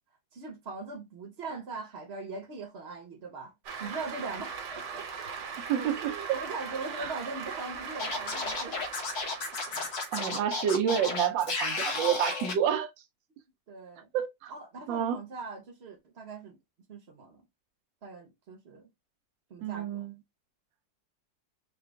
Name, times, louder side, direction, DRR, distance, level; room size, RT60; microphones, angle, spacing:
voice 1, 0.3-3.5 3.8-5.3 5.7-8.8 13.7-14.1 14.5-16.6 16.9-17.4 18.0-18.9 19.5-20.1, right 3 dB, 45° right, 1.0 m, -41 dB
Cheering / Applause, 3.6-10.5, right 6 dB, 70° right, 1.6 m, -40 dB
voice 2, 5.7-6.4 7.0-7.1 9.7-12.9 14.1-14.5 14.9-15.2 19.6-20.2, right 9 dB, 90° right, 1.4 m, -29 dB
Scratching (performance technique), 8.0-12.5, left 3 dB, 75° left, 1.7 m, -33 dB
4.7 x 2.3 x 3.4 m
omnidirectional pair, 1.9 m